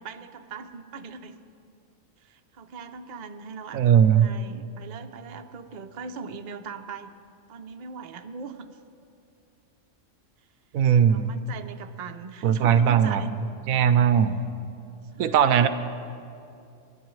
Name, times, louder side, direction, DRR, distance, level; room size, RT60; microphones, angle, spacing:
voice 1, 0.0-1.4 2.2-7.1 7.5-8.8 11.1-13.3 15.1-15.7, right 5 dB, 45° right, 7 dB, 0.6 m, -40 dB
voice 2, 3.7-4.3 10.7-11.3 12.4-13.4 13.7-14.4 15.2-15.7, right 8 dB, 85° right, 11 dB, 1.0 m, -19 dB
28.5 x 11.0 x 3.2 m, 2.6 s
omnidirectional pair, 1.4 m